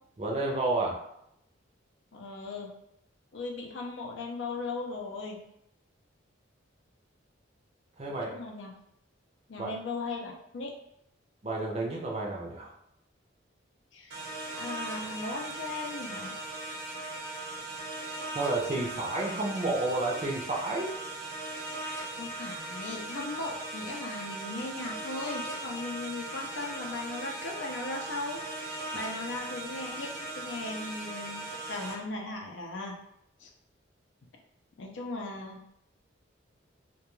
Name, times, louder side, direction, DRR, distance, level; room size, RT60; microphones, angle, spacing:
voice 1, 0.2-1.0 8.0-8.3 9.6-9.7 11.4-12.7 18.3-21.0, right 2 dB, 30° right, -1 dB, 0.5 m, -30 dB
voice 2, 2.1-2.7 3.3-5.4 8.1-8.7 9.5-10.7 13.9-14.2 14.5-16.4 21.8-28.4 28.9-33.0 33.4-33.5 34.8-35.6, left 3 dB, 70° left, 2 dB, 0.5 m, -38 dB
sound 1, 14.1-31.9, right 2 dB, 70° right, 0.7 m, -39 dB
2.3 x 2.2 x 3.0 m, 0.77 s
head